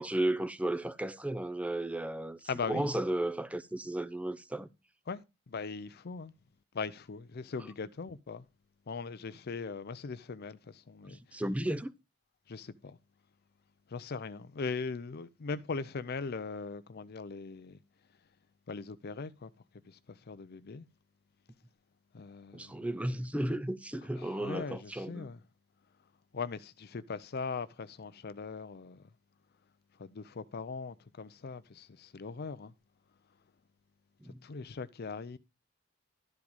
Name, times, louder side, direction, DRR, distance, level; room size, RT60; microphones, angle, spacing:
voice 1, 0.0-4.7 11.1-11.9 22.5-25.3 34.2-34.4, right 1 dB, 5° right, 0.6 m, -34 dB
voice 2, 2.5-2.9 5.1-6.3 6.7-8.4 8.9-11.4 12.5-13.0 13.9-17.8 18.7-19.5 19.8-20.9 22.1-22.8 24.2-25.4 26.3-29.1 30.0-32.7 34.4-35.4, left 4 dB, 55° left, 0.5 m, -40 dB
12.0 x 4.9 x 5.3 m
head